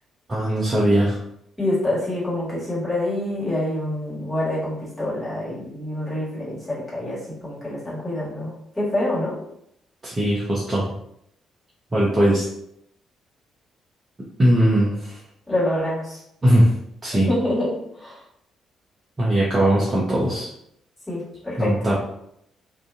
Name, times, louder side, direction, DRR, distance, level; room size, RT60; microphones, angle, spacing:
voice 1, 0.3-1.2 10.0-10.8 11.9-12.5 14.4-15.2 16.4-16.7 17.0-17.3 19.2-20.5 21.6-21.9, right 1 dB, 25° right, -6 dB, 0.6 m, -19 dB
voice 2, 1.6-9.4 15.5-16.2 17.3-18.2 21.1-21.9, left 1 dB, 10° left, -7 dB, 1.5 m, -26 dB
2.5 x 2.2 x 2.6 m, 0.74 s
figure-of-eight pair, 40°, 0 cm